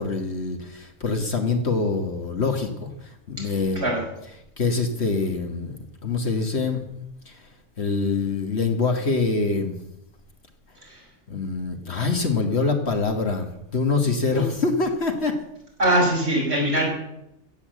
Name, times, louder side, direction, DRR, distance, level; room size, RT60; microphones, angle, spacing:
voice 1, 0.0-2.9 3.3-3.9 4.6-5.8 6.0-6.8 7.3-7.4 7.8-9.8 11.3-15.3, left 4 dB, 55° left, 5 dB, 1.9 m, -24 dB
voice 2, 3.4-4.1 10.8-11.0 14.2-14.4 15.8-16.9, right 1 dB, 50° right, -2 dB, 5.6 m, -23 dB
15.5 x 8.5 x 7.9 m, 0.84 s
omnidirectional pair, 1.4 m